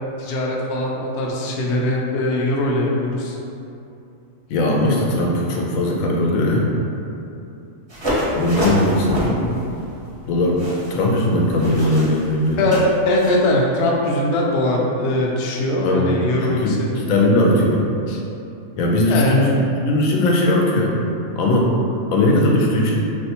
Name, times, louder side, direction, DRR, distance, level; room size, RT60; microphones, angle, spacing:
voice 1, 0.2-3.4 12.6-17.1 18.1-18.2 19.1-19.4, left 1 dB, 65° left, -2 dB, 0.7 m, -21 dB
voice 2, 4.5-6.7 8.4-9.5 10.3-10.6 10.9-12.7 15.8-17.9 18.8-21.0 21.4-21.7 22.1-23.0, left 1 dB, 90° left, -1 dB, 1.0 m, -19 dB
sound 1, 7.9-13.4, equal, 35° right, 0.4 m, -28 dB
3.3 x 2.6 x 2.8 m, 2.7 s
omnidirectional pair, 1.4 m